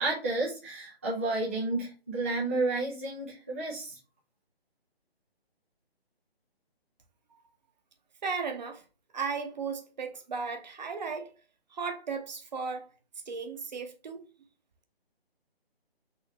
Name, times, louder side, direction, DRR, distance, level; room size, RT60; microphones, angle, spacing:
voice 1, 0.0-4.0, right 2 dB, 15° right, 0.5 m, -31 dB
voice 2, 8.2-8.8 9.1-11.3 11.7-12.9 13.3-14.2, right 5 dB, 45° right, 0.9 m, -35 dB
4.1 x 3.0 x 4.1 m
figure-of-eight pair, 160°, 31 cm